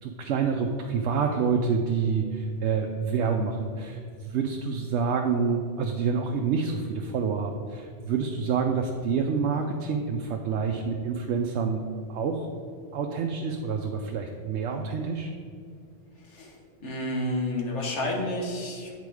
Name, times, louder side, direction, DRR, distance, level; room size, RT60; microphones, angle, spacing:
voice 1, 0.0-11.8 12.1-12.5 12.9-15.3, right 5 dB, 75° right, 3 dB, 0.8 m, -27 dB
voice 2, 16.1-19.0, left 1 dB, 85° left, 0 dB, 1.5 m, -31 dB
8.3 x 4.1 x 4.8 m, 2.2 s
omnidirectional pair, 1.2 m